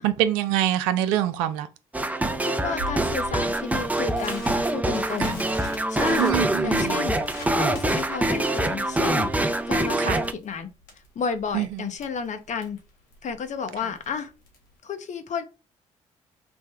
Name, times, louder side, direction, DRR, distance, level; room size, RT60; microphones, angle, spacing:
voice 1, 0.0-1.7 6.2-7.0 10.0-10.2 11.5-11.9, right 12 dB, 80° right, 0.4 m, -25 dB
sound 1, 1.9-10.3, right 1 dB, 10° right, 0.5 m, -25 dB
voice 2, 2.4-7.2 7.6-9.3 9.7-10.7 11.2-12.8 13.2-14.3 14.8-15.4, left 6 dB, 50° left, 0.7 m, -32 dB
Crackle, 2.8-14.8, left 1 dB, 75° left, 1.3 m, -43 dB
3.4 x 2.1 x 3.3 m
hypercardioid pair, 50°, 16 cm